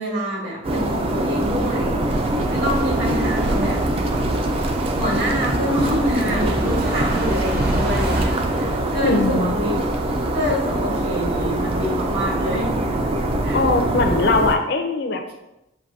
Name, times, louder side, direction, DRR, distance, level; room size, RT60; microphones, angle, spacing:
voice 1, 0.0-2.0 2.5-3.8 4.9-9.7 10.2-13.0 13.4-13.6, equal, 65° right, -4 dB, 1.6 m, -26 dB
sound 1, 0.6-14.5, right 1 dB, 30° right, 0.3 m, -23 dB
sound 2, 2.3-8.3, right 1 dB, 45° right, 0.8 m, -29 dB
voice 2, 9.0-9.5 13.5-15.4, left 3 dB, 55° left, 5 dB, 0.5 m, -21 dB
7.4 x 2.6 x 2.6 m, 0.92 s
head